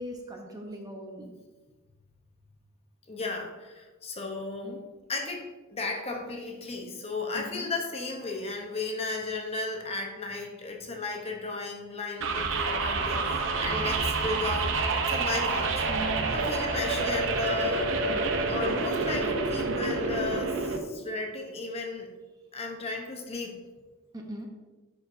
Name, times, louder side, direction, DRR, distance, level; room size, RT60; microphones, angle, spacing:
voice 1, 0.0-1.3 4.6-4.8 7.3-7.7 15.9-16.4 24.1-24.5, equal, 20° right, 1 dB, 0.8 m, -39 dB
voice 2, 3.1-4.8 5.1-14.8 15.1-15.8 16.3-17.9 18.5-22.1 22.5-23.6, left 3 dB, 30° left, 2 dB, 0.8 m, -35 dB
sound 1, 12.2-20.8, right 3 dB, 60° right, 0.7 m, -28 dB
10.5 x 4.5 x 2.6 m, 1.2 s
head